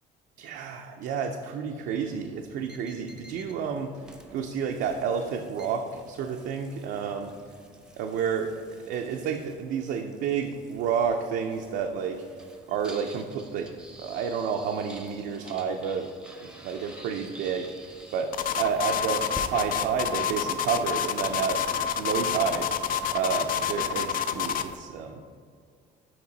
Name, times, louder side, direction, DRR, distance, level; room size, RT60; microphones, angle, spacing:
voice 1, 0.4-3.9 4.3-7.3 8.0-8.5 8.9-12.2 12.7-13.7 14.0-16.1 16.6-21.7 22.0-22.8 23.1-25.2, right 6 dB, 75° right, 3 dB, 0.4 m, -30 dB
sound 1, 1.8-19.7, right 1 dB, 5° right, 0.6 m, -49 dB
sound 2, 18.3-24.7, left 8 dB, 55° left, 0.4 m, -28 dB
5.9 x 4.6 x 3.9 m, 2.2 s
cardioid pair, 110°, 17 cm